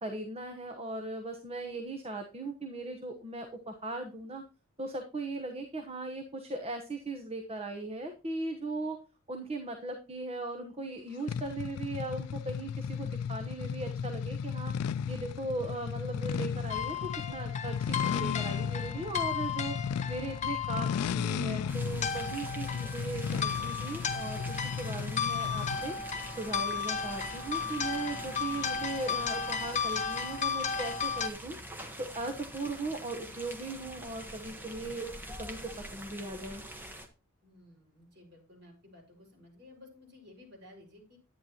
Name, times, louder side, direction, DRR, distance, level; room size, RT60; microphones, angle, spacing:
voice 1, 0.0-4.4 4.8-9.0 9.3-14.7 15.1-19.8 20.1-25.9 26.4-31.6 32.0-36.6, right 2 dB, 25° right, 5 dB, 1.0 m, -38 dB
sound 1, 11.3-26.0, left 7 dB, 85° left, 0.3 m, -35 dB
sound 2, 16.7-31.3, left 6 dB, 30° left, 0.7 m, -35 dB
sound 3, 21.7-37.1, equal, 10° right, 1.3 m, -45 dB
voice 2, 37.4-41.2, left 2 dB, 50° right, -1 dB, 5.5 m, -55 dB
11.0 x 9.3 x 2.9 m, 0.32 s
head